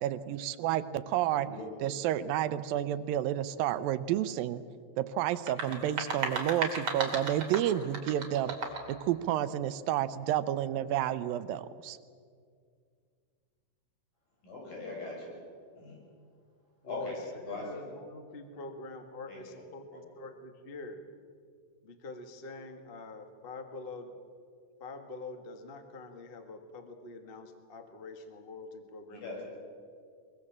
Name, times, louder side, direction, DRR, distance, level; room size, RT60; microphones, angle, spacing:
voice 1, 0.0-1.5 1.8-4.6 5.0-8.5 8.9-12.0, right 11 dB, 80° right, 14 dB, 2.5 m, -30 dB
voice 2, 1.3-1.6 14.4-15.3 15.8-16.0 16.8-17.1 17.5-17.6 19.3-19.4 29.1-29.4, left 3 dB, 70° left, -2 dB, 8.9 m, -40 dB
sound 1, 5.3-9.0, right 4 dB, 45° right, 3.4 m, -35 dB
voice 3, 16.8-21.0 21.8-24.1 24.8-29.4, left 3 dB, 90° left, 6 dB, 0.5 m, -45 dB
23.5 x 22.5 x 7.4 m, 2.2 s
omnidirectional pair, 4.1 m